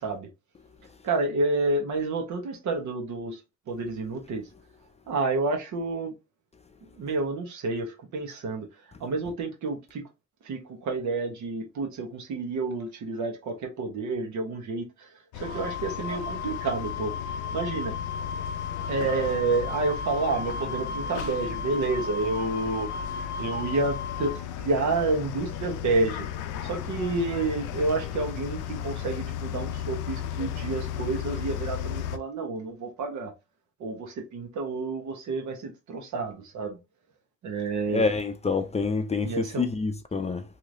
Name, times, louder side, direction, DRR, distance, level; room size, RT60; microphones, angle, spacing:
voice 1, 1.0-3.4 3.7-4.5 5.1-6.1 7.0-8.7 9.0-10.0 10.4-15.1 15.3-17.1 17.5-18.0 18.9-22.9 23.4-26.3 26.6-33.3 33.8-36.8 37.4-38.1 39.2-39.7, right 3 dB, 75° right, 1.2 m, -29 dB
sound 1, 15.3-32.2, left 9 dB, 85° left, 0.5 m, -35 dB
Wind instrument woodwind instrument, 15.4-24.4, left 4 dB, 45° left, 0.8 m, -35 dB
voice 2, 37.9-40.4, left 4 dB, 20° left, 0.4 m, -27 dB
3.1 x 2.8 x 2.6 m
cardioid pair, 90°, 30 cm